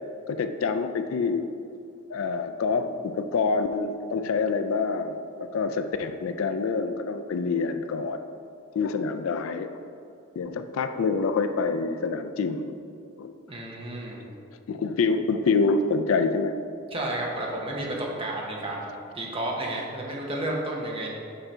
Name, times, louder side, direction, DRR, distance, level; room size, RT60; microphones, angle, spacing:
voice 1, 0.3-1.4 2.1-8.3 8.7-9.7 10.4-12.8 13.2-13.3 14.7-16.6, left 4 dB, 75° left, 9 dB, 0.4 m, -26 dB
voice 2, 13.5-14.2 16.9-21.1, right 1 dB, 25° right, -2 dB, 0.9 m, -32 dB
6.7 x 3.8 x 4.4 m, 2.4 s
head